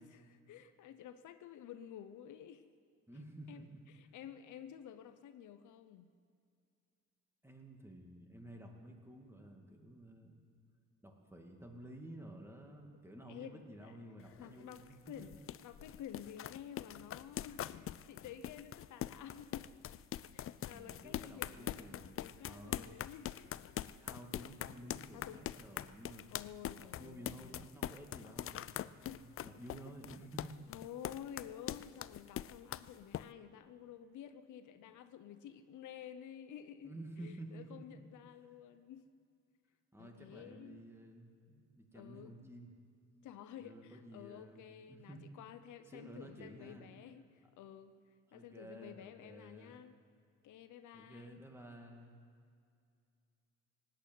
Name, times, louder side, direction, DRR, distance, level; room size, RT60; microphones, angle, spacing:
voice 1, 0.0-2.7 3.5-6.1 13.3-13.9 14.4-15.4 15.6-19.7 20.3-23.5 25.1-25.4 26.3-27.7 29.0-29.3 30.7-39.1 40.0-40.9 41.9-42.3 43.2-47.9 48.3-50.0 50.4-51.4, left 9 dB, 75° left, 11 dB, 0.8 m, -52 dB
voice 2, 3.1-3.8 7.4-10.4 11.0-15.5 20.6-22.9 24.0-26.3 26.9-30.6 34.8-34.9 35.4-35.5 36.8-38.1 39.9-42.7 43.6-45.2 45.9-46.9 48.3-49.8 50.9-52.2, right 1 dB, 10° right, 1 dB, 2.3 m, -52 dB
sound 1, 14.2-33.2, left 11 dB, 45° left, 0.4 m, -43 dB
17.0 x 8.9 x 9.3 m, 2.3 s
cardioid pair, 90°, 30 cm